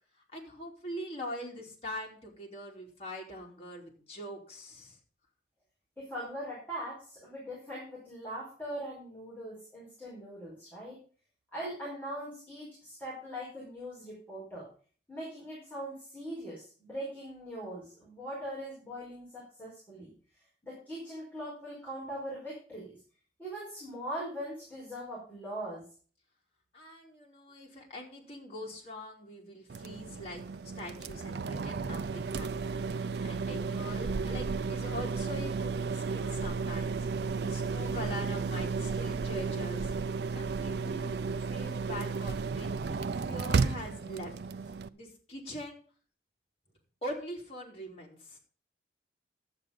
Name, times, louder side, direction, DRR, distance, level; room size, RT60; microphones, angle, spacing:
voice 1, 0.3-5.0 26.7-30.4 30.8-39.9 40.3-44.3 44.9-45.8 47.0-48.4, equal, 35° left, -2 dB, 3.2 m, -43 dB
voice 2, 6.0-11.0 11.5-14.7 15.1-20.1 20.6-23.0 23.4-25.9, equal, 10° left, -7 dB, 4.8 m, -41 dB
sound 1, 29.7-44.9, right 4 dB, 70° right, 0.5 m, -33 dB
11.5 x 8.0 x 5.2 m, 0.41 s
head